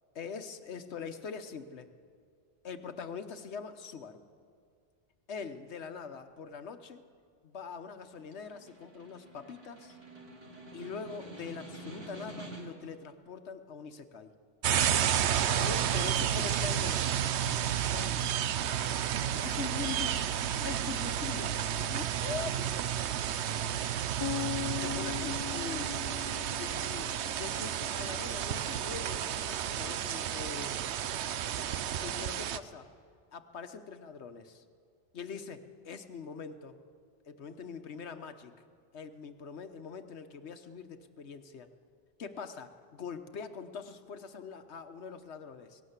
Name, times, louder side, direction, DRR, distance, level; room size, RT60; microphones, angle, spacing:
voice 1, 0.1-1.9 2.6-4.3 5.3-7.0 7.4-10.0 10.7-14.3 15.5-17.0 17.4-18.4 19.3-21.6 21.9-22.7 24.8-26.0 26.6-30.8 32.0-32.9 33.3-34.6 35.1-36.8 37.3-38.6 38.9-41.7 42.2-45.8, left 6 dB, 75° left, 9 dB, 1.3 m, -43 dB
Snare drum, 8.0-12.9, right 1 dB, 60° right, 2.8 m, -48 dB
sound 1, 14.6-32.6, right 10 dB, 80° right, 0.9 m, -31 dB
sound 2, 24.2-28.1, left 12 dB, 45° left, 0.3 m, -40 dB
18.5 x 17.5 x 8.1 m, 2.3 s
omnidirectional pair, 1.1 m